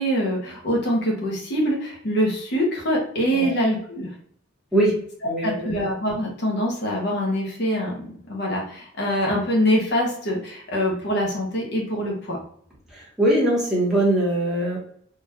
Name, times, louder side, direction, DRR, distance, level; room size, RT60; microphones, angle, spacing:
voice 1, 0.0-4.1 5.4-12.4, equal, 60° left, -2 dB, 1.0 m, -24 dB
voice 2, 5.2-5.7 12.9-14.8, right 1 dB, 5° right, -6 dB, 1.1 m, -22 dB
3.8 x 2.5 x 2.7 m, 0.62 s
head